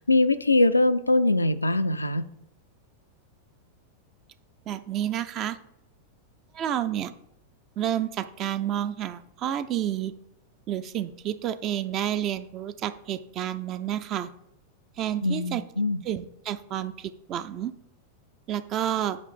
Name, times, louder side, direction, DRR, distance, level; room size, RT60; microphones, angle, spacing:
voice 1, 0.0-2.3 15.2-16.0, left 2 dB, 80° left, 12 dB, 0.4 m, -22 dB
voice 2, 4.7-5.6 6.5-7.1 7.8-10.1 10.7-14.3 15.0-15.6 16.0-17.7 18.5-19.2, right 11 dB, 35° right, 12 dB, 0.5 m, -30 dB
9.3 x 3.2 x 6.7 m, 0.83 s
figure-of-eight pair, 90°, 0 cm